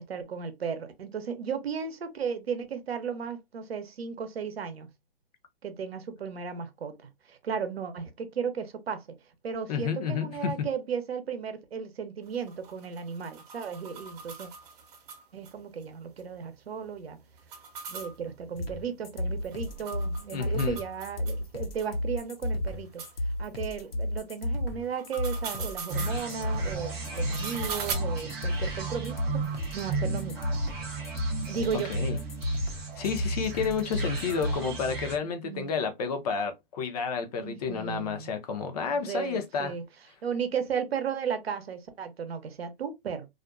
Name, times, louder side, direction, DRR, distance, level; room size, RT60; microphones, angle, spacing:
voice 1, 0.0-4.9 5.6-9.1 9.4-14.5 15.3-17.2 17.9-23.0 23.4-30.5 31.5-31.9 35.2-35.7 37.4-38.3 38.9-39.8 40.2-43.3, right 6 dB, 85° right, 0.7 m, -35 dB
voice 2, 9.7-10.5 20.3-20.8 31.9-32.2 33.0-39.7, left 6 dB, 40° left, 0.6 m, -30 dB
sound 1, 12.3-15.5 15.8-15.9 16.2-16.3 17.4-21.4 21.8-21.9 22.5-22.6 23.0-23.1 24.8-26.2 27.1-27.9, right 5 dB, 40° right, 0.7 m, -40 dB
sound 2, 18.5-34.5, left 1 dB, 75° left, 0.9 m, -32 dB
sound 3, 25.9-35.2, right 5 dB, 10° right, 0.3 m, -36 dB
2.4 x 2.2 x 2.4 m
hypercardioid pair, 140°, 30 cm